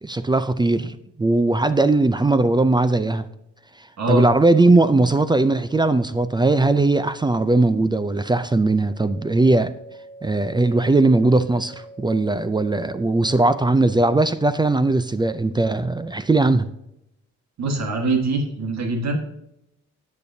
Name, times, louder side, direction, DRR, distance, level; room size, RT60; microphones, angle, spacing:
voice 1, 0.0-3.3 4.1-9.7 10.2-16.7, right 2 dB, 15° right, 0.4 m, -19 dB
voice 2, 4.0-4.3 17.6-19.2, right 3 dB, 65° right, 1.6 m, -23 dB
sound 1, 8.7-13.6, right 2 dB, 20° left, 3.2 m, -45 dB
13.5 x 8.6 x 2.7 m
cardioid pair, 110°, 30 cm